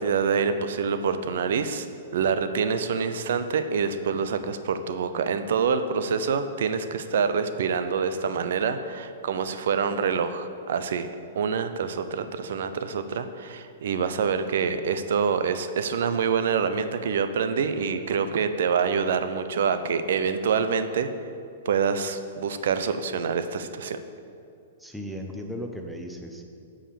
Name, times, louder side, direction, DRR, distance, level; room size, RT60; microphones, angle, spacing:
voice 1, 0.0-1.9 2.1-11.1 11.4-21.1 21.7-24.0, right 6 dB, 70° right, 10 dB, 0.5 m, -26 dB
voice 2, 24.8-26.4, equal, ahead, 2 dB, 0.7 m, -36 dB
8.8 x 4.9 x 6.8 m, 2.5 s
hypercardioid pair, 150°, 0 cm